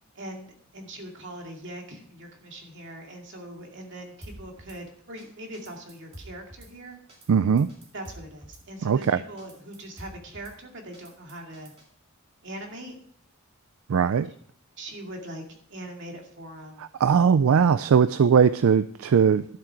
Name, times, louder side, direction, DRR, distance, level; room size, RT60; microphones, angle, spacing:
voice 1, 0.2-7.0 7.9-11.7 12.4-13.0 14.8-16.9, right 1 dB, 60° right, 2 dB, 2.3 m, -41 dB
Drum kit / Snare drum, 4.2-4.8 5.2-5.3 5.5-6.7 7.1-7.3 7.6-8.6 9.0-9.1 9.4-10.6 10.9-11.9, right 1 dB, 30° right, 2.4 m, -47 dB
voice 2, 7.3-7.7 8.8-9.2 13.9-14.3 16.8-19.5, right 6 dB, 75° right, 14 dB, 0.4 m, -20 dB
12.0 x 7.7 x 4.5 m, 0.62 s
head